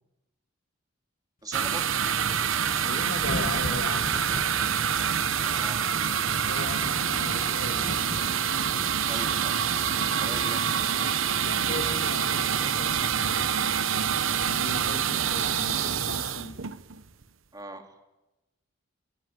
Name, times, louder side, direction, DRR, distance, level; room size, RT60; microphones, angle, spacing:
voice 1, 1.4-2.0 5.4-5.9 9.1-9.6 10.2-10.7 17.5-17.9, right 2 dB, 20° right, 3.0 m, -40 dB
sound 1, 1.5-17.2, right 8 dB, 80° right, 1.0 m, -26 dB
sound 2, 2.7-16.7, left 2 dB, 45° left, 1.1 m, -42 dB
voice 2, 2.8-4.2 6.3-8.3 11.4-13.6 14.4-16.7, left 2 dB, 70° left, 2.3 m, -38 dB
Telephone, 7.7-12.7, right 4 dB, 10° left, 5.0 m, -50 dB
24.5 x 22.0 x 9.4 m
head